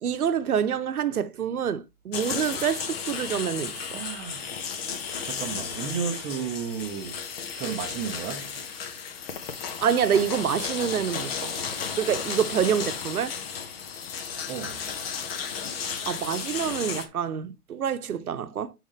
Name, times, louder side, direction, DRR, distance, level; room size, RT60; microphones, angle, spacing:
voice 1, 0.0-4.0 9.8-11.5 12.0-13.3 16.1-18.7, right 8 dB, 75° right, 0.9 m, -27 dB
sound 1, 2.1-17.1, left 6 dB, 40° left, 1.1 m, -34 dB
voice 2, 3.9-4.5 5.2-7.2 7.6-8.6 14.5-14.9, right 7 dB, 15° right, 0.7 m, -33 dB
9.5 x 4.0 x 3.1 m
hypercardioid pair, 140°, 44 cm